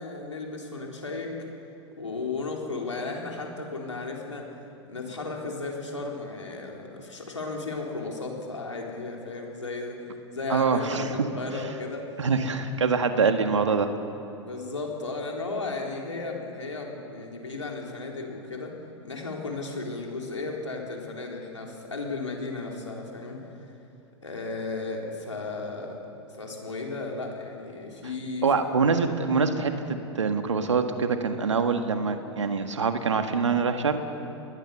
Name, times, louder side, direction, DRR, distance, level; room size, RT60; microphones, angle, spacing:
voice 1, 0.0-1.4 2.0-4.5 4.9-12.1 13.3-13.4 14.4-18.7 19.0-23.5 24.2-26.0 26.4-28.5, left 3 dB, 90° left, 0 dB, 4.0 m, -34 dB
voice 2, 10.5-11.2 12.2-13.9 28.4-34.0, right 5 dB, 85° right, 7 dB, 1.6 m, -25 dB
27.5 x 20.5 x 6.9 m, 2.8 s
hypercardioid pair, 95°, 15 cm